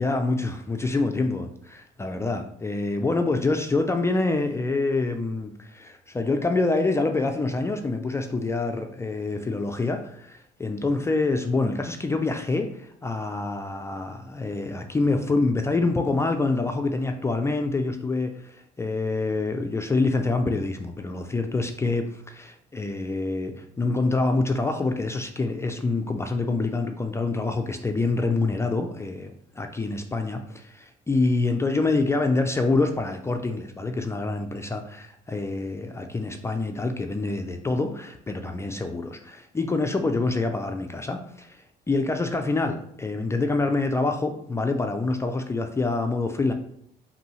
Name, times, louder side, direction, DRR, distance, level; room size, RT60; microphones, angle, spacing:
voice 1, 0.0-46.5, left 3 dB, 15° left, 5 dB, 0.3 m, -26 dB
5.1 x 2.7 x 3.1 m, 0.69 s
cardioid pair, 110°, 17 cm